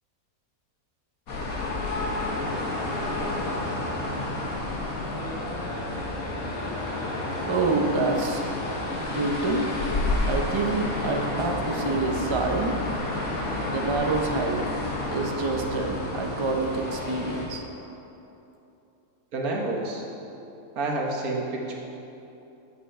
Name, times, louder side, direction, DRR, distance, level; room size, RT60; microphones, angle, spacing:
sound 1, 1.3-17.5, left 2 dB, 75° left, 1.8 m, -30 dB
voice 1, 7.5-8.4 9.0-9.7 10.3-12.8 13.7-14.6 15.1-17.6, right 3 dB, 30° right, 2 dB, 0.5 m, -27 dB
voice 2, 19.3-20.0 20.7-21.8, right 2 dB, 80° right, -1 dB, 1.7 m, -29 dB
8.2 x 8.1 x 5.6 m, 2.9 s
omnidirectional pair, 1.5 m